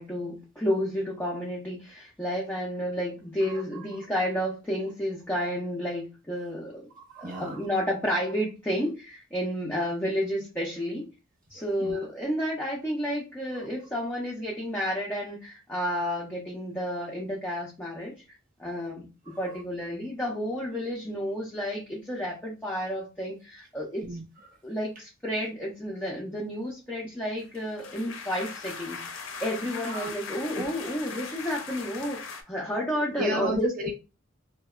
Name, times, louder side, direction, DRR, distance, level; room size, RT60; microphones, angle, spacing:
voice 1, 0.0-6.9 7.2-11.0 11.5-18.1 18.6-19.1 19.4-24.0 24.6-29.0 29.4-33.7, equal, 10° left, -4 dB, 0.4 m, -31 dB
voice 2, 3.4-4.0 7.0-7.7 11.5-12.0 13.5-13.7 19.3-19.6 24.0-24.2 29.8-30.1 30.6-30.7 33.2-34.0, equal, 45° right, 0 dB, 0.9 m, -35 dB
sound 1, 27.4-32.4, left 5 dB, 65° left, 0.5 m, -39 dB
2.7 x 2.1 x 2.3 m, 0.30 s
head